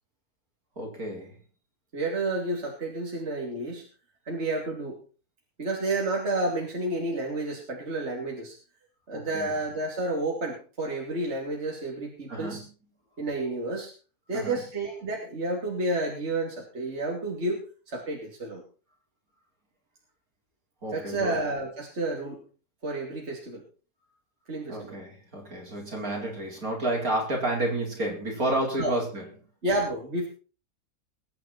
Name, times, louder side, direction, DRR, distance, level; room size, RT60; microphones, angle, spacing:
voice 1, 0.8-1.4 9.1-9.5 12.3-12.7 14.3-14.6 20.8-21.4 24.7-29.3, right 1 dB, 65° right, 0 dB, 5.2 m, -30 dB
voice 2, 1.9-3.8 4.3-5.0 5.6-8.5 9.1-12.6 13.2-13.9 14.3-17.6 17.9-18.6 20.9-22.4 22.8-23.6 24.5-25.0 28.8-29.0 29.6-30.3, right 2 dB, 45° right, -1 dB, 3.2 m, -30 dB
22.0 x 9.1 x 4.4 m, 0.36 s
omnidirectional pair, 1.7 m